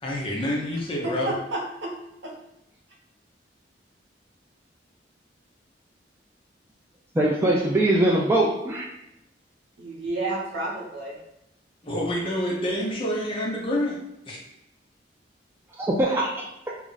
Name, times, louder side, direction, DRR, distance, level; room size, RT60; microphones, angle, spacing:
voice 1, 0.0-1.3 11.8-14.0 14.3-14.4, equal, 30° left, -3 dB, 0.6 m, -27 dB
voice 2, 1.0-1.9 2.2-2.3 9.8-11.2, right 2 dB, 80° right, -3 dB, 0.8 m, -30 dB
voice 3, 7.2-8.8 15.8-16.3, right 1 dB, 15° right, -4 dB, 0.3 m, -21 dB
2.4 x 2.1 x 3.8 m, 0.83 s
head